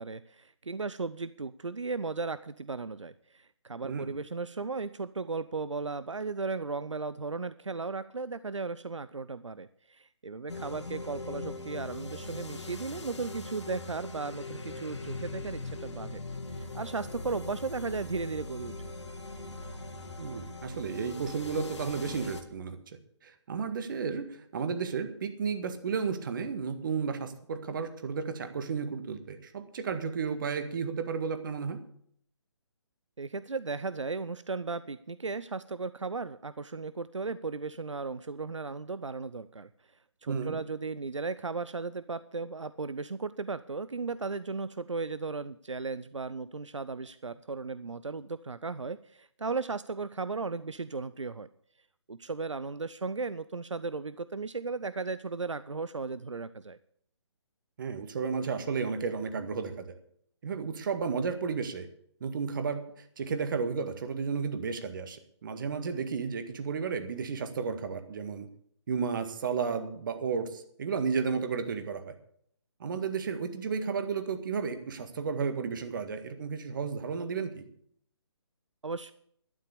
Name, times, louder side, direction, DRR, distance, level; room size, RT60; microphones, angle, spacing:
voice 1, 0.0-16.2 16.5-18.9 33.2-39.7 40.2-51.5 52.1-56.8 78.8-79.1, right 4 dB, 85° right, 15 dB, 0.6 m, -36 dB
voice 2, 3.8-4.1 20.2-22.8 23.2-31.8 40.3-40.6 57.8-59.8 60.4-61.9 62.2-68.5 68.9-72.1 72.8-77.6, right 5 dB, 45° right, 9 dB, 1.8 m, -33 dB
sound 1, 10.5-22.4, left 2 dB, 70° left, 2.2 m, -41 dB
12.0 x 9.5 x 6.9 m, 0.66 s
figure-of-eight pair, 145°, 15 cm